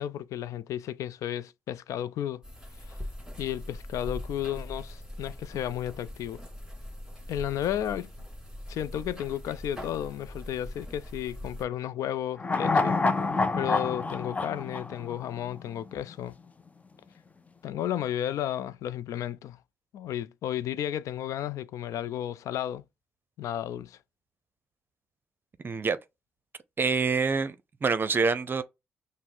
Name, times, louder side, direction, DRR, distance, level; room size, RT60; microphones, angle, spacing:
voice 1, 0.0-2.4 2.9-3.0 3.4-6.4 7.3-8.1 8.7-13.0 13.5-16.3 17.6-19.6 19.9-22.8 23.4-24.0, left 11 dB, 70° left, 0.4 m, -33 dB
sound 1, 2.4-11.6, left 1 dB, 10° right, 2.1 m, -41 dB
sound 2, 12.4-15.8 16.1-16.2, left 3 dB, 25° left, 0.6 m, -27 dB
voice 2, 25.6-26.0 26.8-27.5 27.8-28.6, right 4 dB, 40° right, 0.6 m, -26 dB
6.0 x 2.0 x 3.6 m
supercardioid pair, 55°, 6 cm